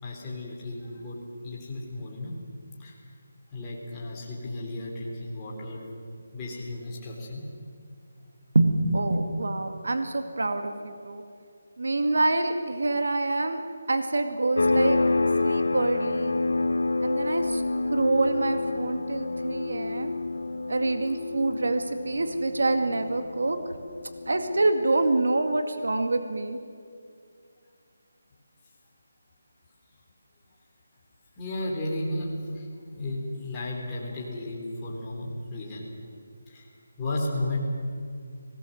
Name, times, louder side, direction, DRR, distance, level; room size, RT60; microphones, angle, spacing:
voice 1, 0.0-2.4 2.8-3.0 3.5-5.8 6.3-7.4 31.3-35.9 36.5-37.6, left 1 dB, 10° left, -5 dB, 3.5 m, -34 dB
voice 2, 8.5-11.2 11.8-13.6 13.9-15.0 15.4-16.4 17.0-17.6 17.9-20.1 20.7-23.6 24.3-26.6, right 2 dB, 75° right, 7 dB, 2.1 m, -26 dB
sound 1, 14.6-24.9, left 2 dB, 85° left, 0.9 m, -28 dB
25.0 x 19.5 x 7.9 m, 2.3 s
hypercardioid pair, 180°, 0 cm